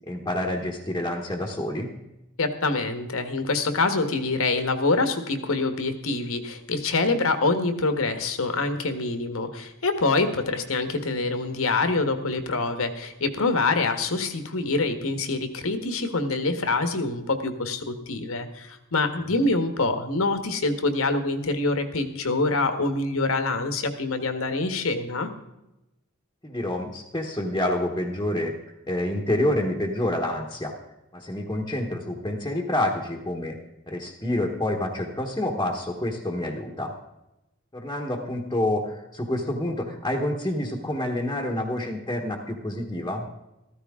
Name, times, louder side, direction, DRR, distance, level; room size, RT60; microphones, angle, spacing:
voice 1, 0.1-2.0 26.4-28.5 28.9-30.7 31.1-33.6 33.9-36.9 37.7-43.3, left 1 dB, 15° left, -1 dB, 1.2 m, -28 dB
voice 2, 2.4-25.3, left 3 dB, 65° left, 8 dB, 1.4 m, -25 dB
14.5 x 14.0 x 3.7 m, 0.93 s
head